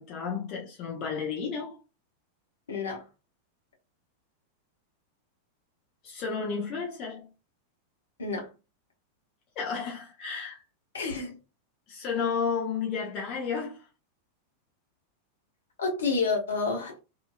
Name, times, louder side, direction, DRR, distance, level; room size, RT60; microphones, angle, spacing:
voice 1, 0.0-1.8 6.0-7.3 9.5-10.6 11.9-13.9, left 6 dB, 40° left, 0.9 m, -32 dB
voice 2, 2.7-3.1 8.2-8.5 10.9-11.4 15.8-17.0, left 4 dB, 70° left, 1.2 m, -29 dB
2.8 x 2.7 x 2.2 m
figure-of-eight pair, 90°, 0 cm